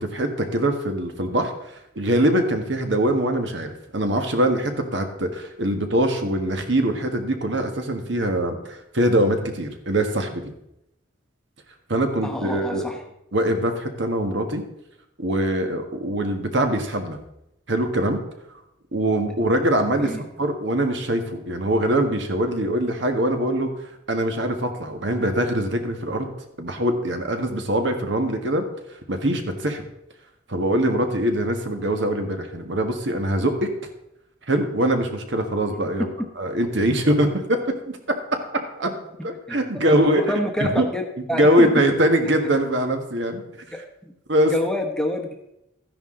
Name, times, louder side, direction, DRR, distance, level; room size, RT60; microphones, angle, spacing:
voice 1, 0.1-1.5 1.9-10.5 11.9-12.8 13.3-14.6 15.2-17.2 17.7-18.2 18.9-23.7 24.1-26.3 26.6-28.6 29.1-29.8 30.5-33.7 34.5-38.2 38.8-38.9 39.2-40.2 40.6-40.9 41.3-43.4 44.3-44.5, right 1 dB, 65° right, 5 dB, 1.6 m, -23 dB
voice 2, 12.2-13.0 20.0-20.2 39.5-39.6 39.9-41.0 41.3-41.8 43.7-44.1 44.5-45.5, equal, 5° left, 3 dB, 1.0 m, -27 dB
13.5 x 10.5 x 3.8 m, 0.84 s
head